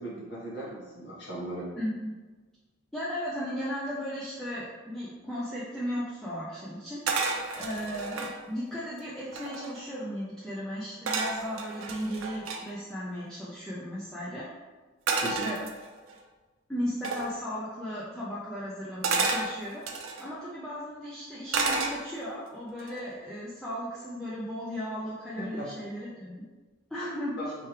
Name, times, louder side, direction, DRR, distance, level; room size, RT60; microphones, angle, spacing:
voice 1, 0.0-1.7 15.2-15.5 25.4-25.7 27.4-27.5, right 1 dB, 55° left, -7 dB, 1.5 m, -37 dB
voice 2, 1.8-2.2 2.9-7.0 7.6-14.5 15.2-15.6 16.7-19.8 20.2-26.4 26.9-27.4, equal, 5° left, -9 dB, 0.5 m, -36 dB
sound 1, 7.1-8.3 8.9-9.0 9.2-9.8 11.1-12.6 15.1-16.1 17.0-17.3 19.0-20.3 21.5-22.3 22.8-23.1, right 4 dB, 80° right, 0.5 m, -31 dB
4.7 x 3.1 x 3.2 m, 1.3 s
head